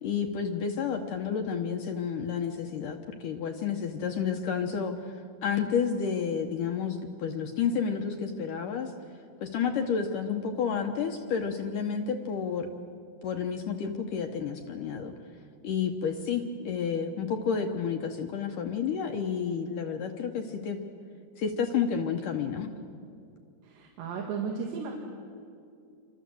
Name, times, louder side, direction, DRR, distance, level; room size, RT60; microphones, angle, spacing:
voice 1, 0.0-5.2 5.4-8.9 9.4-12.7 13.2-15.1 15.6-20.8 21.4-22.7, left 6 dB, 65° left, 4 dB, 2.3 m, -30 dB
voice 2, 23.6-24.9, right 6 dB, 90° right, 0 dB, 4.2 m, -34 dB
28.0 x 24.5 x 7.8 m, 2.4 s
omnidirectional pair, 4.8 m